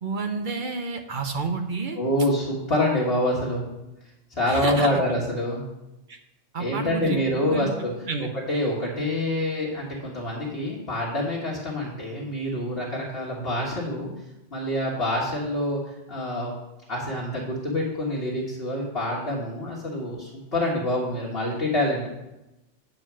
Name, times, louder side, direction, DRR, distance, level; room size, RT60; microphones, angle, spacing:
voice 1, 0.0-2.0 4.5-5.0 6.1-6.2 6.5-7.7 8.1-8.3, right 4 dB, 45° right, 5 dB, 0.8 m, -30 dB
voice 2, 1.9-3.7 4.3-5.6 6.6-7.9 8.2-14.1 14.5-16.5 16.9-22.1, left 1 dB, 50° left, -6 dB, 1.8 m, -26 dB
9.0 x 4.5 x 6.0 m, 0.95 s
omnidirectional pair, 1.3 m